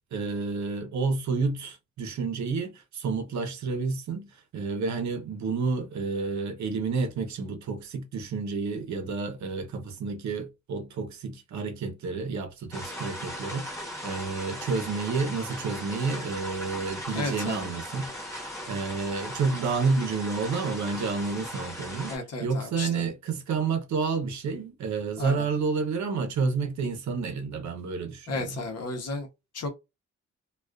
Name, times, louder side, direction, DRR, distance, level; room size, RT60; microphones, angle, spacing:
voice 1, 0.1-18.1 18.7-22.1 22.4-28.5, right 4 dB, 70° right, 0.7 m, -30 dB
sound 1, 12.7-22.2, equal, 10° left, 0.9 m, -38 dB
voice 2, 17.1-17.7 22.1-23.0 25.2-25.5 28.3-29.3 29.5-29.7, left 2 dB, 55° left, 0.8 m, -33 dB
2.4 x 2.3 x 2.2 m
cardioid pair, 130°, 29 cm